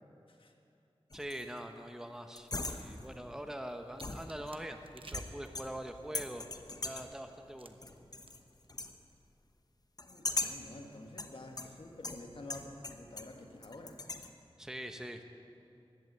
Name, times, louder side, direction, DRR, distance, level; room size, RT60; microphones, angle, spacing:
sound 1, 1.1-1.6 2.4-3.2 4.0-4.7 5.1-5.9 6.2-7.2 7.8-8.4 8.7-9.0 10.0-10.7 11.2-13.4 13.6-14.3, left 2 dB, 40° left, 0.9 m, -40 dB
voice 1, 1.1-6.5 6.8-7.8 14.6-15.2, right 1 dB, 5° right, 6 dB, 1.0 m, -43 dB
sound 2, 3.9-7.0 7.6-8.0 8.3-8.7 8.9-9.2, right 2 dB, 60° right, 1.0 m, -52 dB
voice 2, 10.0-14.0, left 2 dB, 60° left, 3 dB, 1.7 m, -49 dB
15.0 x 11.5 x 8.1 m, 2.7 s
wide cardioid pair, 70°, 10 cm